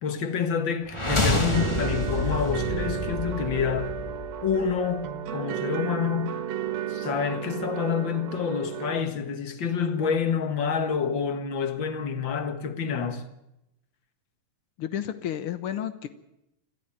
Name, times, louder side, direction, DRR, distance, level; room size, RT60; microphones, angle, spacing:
voice 1, 0.0-3.9 4.4-6.4 6.9-13.2, left 6 dB, 45° left, 1.7 m, -28 dB
sound 1, 0.9-4.8, left 2 dB, 20° left, 0.7 m, -28 dB
sound 2, 1.1-9.0, right 10 dB, 85° right, 3.2 m, -33 dB
voice 2, 14.8-16.1, left 10 dB, 85° left, 1.2 m, -31 dB
26.5 x 14.0 x 8.9 m
omnidirectional pair, 4.1 m